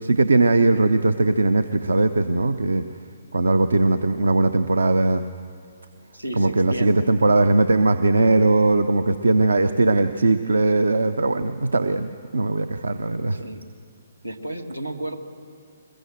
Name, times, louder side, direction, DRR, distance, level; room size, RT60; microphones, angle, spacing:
voice 1, 0.0-2.9 3.3-5.2 6.4-13.4, right 2 dB, 70° right, 11 dB, 0.8 m, -19 dB
voice 2, 6.1-7.4 13.3-13.7 14.2-15.2, right 1 dB, 90° right, 6 dB, 2.0 m, -33 dB
22.0 x 21.0 x 7.7 m, 2.4 s
figure-of-eight pair, 125°, 0 cm